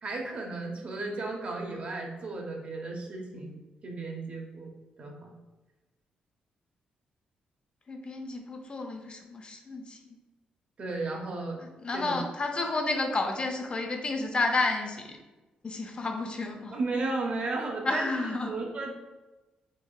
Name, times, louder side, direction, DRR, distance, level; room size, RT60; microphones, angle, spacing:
voice 1, 0.0-4.7 5.0-5.4 10.8-11.6 11.9-12.2 16.7-18.9, right 3 dB, 50° right, 0 dB, 0.8 m, -34 dB
voice 2, 7.9-10.0 11.8-15.0 15.6-16.8 17.9-18.5, left 3 dB, 35° left, 3 dB, 0.5 m, -31 dB
3.4 x 3.0 x 2.3 m, 1.1 s
cardioid pair, 80°, 3 cm